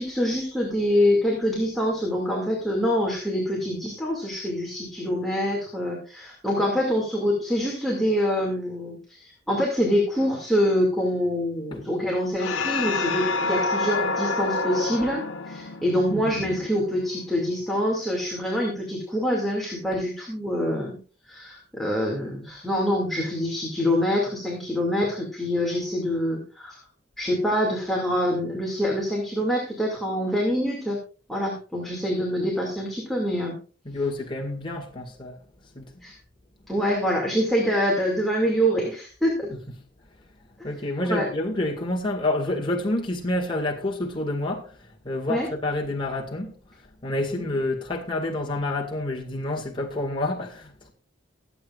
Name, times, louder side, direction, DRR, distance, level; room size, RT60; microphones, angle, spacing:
voice 1, 0.0-21.0 21.3-26.8 27.2-31.0 31.3-33.6 36.0-36.1 36.7-39.5 41.1-41.3 45.3-45.5 47.3-47.4, equal, ahead, 2.3 m, -25 dB
sound 1, 12.4-17.2, left 3 dB, 80° left, 1.0 m, -28 dB
voice 2, 33.9-35.4 35.7-36.0 39.5-39.6 40.6-44.8 45.0-46.6 47.0-50.9, left 1 dB, 25° left, 1.9 m, -28 dB
22.0 x 8.0 x 2.4 m
head